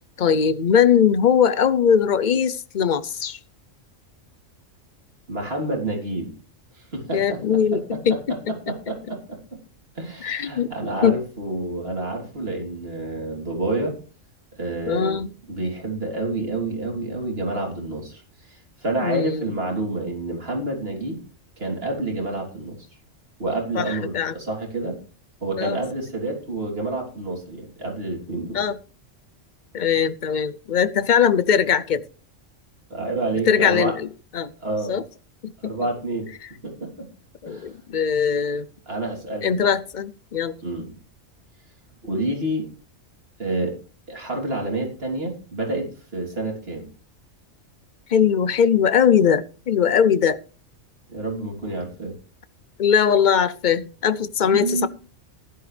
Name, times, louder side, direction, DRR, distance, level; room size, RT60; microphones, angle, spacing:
voice 1, 0.2-3.4 7.1-8.2 8.5-8.6 10.2-10.7 11.0-11.2 14.9-15.3 19.0-19.5 23.7-24.3 25.6-25.8 28.5-28.8 29.7-32.0 33.5-34.1 34.3-34.5 34.9-35.0 35.4-35.9 37.4-38.7 39.4-40.5 48.1-50.4 52.8-54.9, left 7 dB, 50° left, 14 dB, 0.6 m, -20 dB
voice 2, 5.3-6.3 6.7-9.6 10.0-14.0 14.6-15.2 15.5-18.2 18.5-21.2 21.6-22.9 23.4-25.0 25.4-28.6 32.9-34.0 34.6-35.0 35.6-36.3 36.6-37.1 37.5-37.7 38.9-39.7 40.6-40.9 42.0-42.7 43.4-43.8 44.1-46.9 51.1-52.2 54.4-54.9, right 2 dB, 50° right, 0 dB, 3.6 m, -28 dB
15.5 x 11.5 x 3.3 m, 0.36 s
omnidirectional pair, 1.3 m